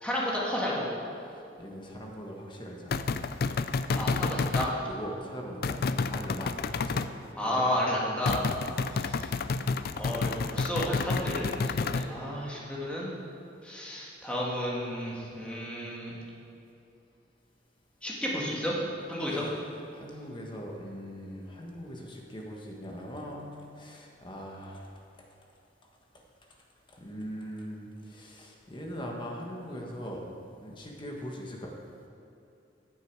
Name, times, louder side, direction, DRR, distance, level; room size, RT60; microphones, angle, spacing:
voice 1, 0.0-0.9 3.9-4.8 7.4-8.5 8.9-9.3 10.0-11.5 11.8-13.1 13.6-16.1 18.0-18.8 19.1-19.5, equal, 5° left, -5 dB, 2.2 m, -32 dB
voice 2, 1.3-3.0 4.8-5.8 6.1-7.1 7.4-7.6 8.7-8.8 19.3-19.5 19.9-24.9 26.9-30.2 30.6-31.7, equal, 25° left, 0 dB, 1.4 m, -41 dB
sound 1, 2.9-4.7 5.6-7.1 8.3-12.1, left 4 dB, 55° left, 0.4 m, -30 dB
14.5 x 8.1 x 4.8 m, 2.7 s
head